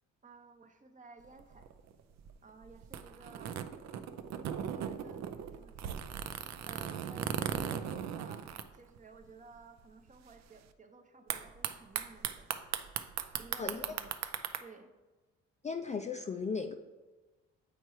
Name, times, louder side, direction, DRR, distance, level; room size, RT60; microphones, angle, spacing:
voice 1, 0.2-1.7 2.4-3.7 4.4-6.1 6.6-8.4 8.7-12.5 13.2-14.2 14.6-14.9, right 4 dB, 25° right, 6 dB, 0.7 m, -55 dB
sound 1, 1.2-9.3 9.6-9.7 9.8-10.3 11.3-14.6, right 9 dB, 65° right, 0.5 m, -38 dB
voice 2, 15.6-16.7, left 5 dB, 25° left, 4 dB, 0.3 m, -36 dB
8.1 x 4.5 x 3.1 m, 1.2 s
cardioid pair, 90°, 30 cm